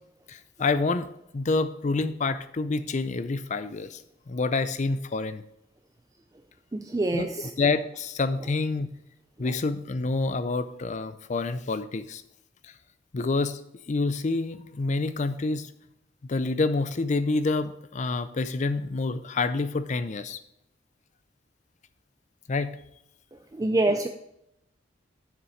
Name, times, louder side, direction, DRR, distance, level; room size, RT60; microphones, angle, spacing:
voice 1, 0.3-4.0 4.3-5.4 7.1-7.3 7.6-8.9 9.4-12.2 13.1-13.6 13.9-15.7 16.3-20.4 22.5-22.7, left 3 dB, 40° left, 13 dB, 0.5 m, -27 dB
voice 2, 6.7-7.5 23.5-24.1, right 2 dB, 20° right, 6 dB, 0.4 m, -25 dB
7.2 x 6.9 x 5.0 m, 0.79 s
head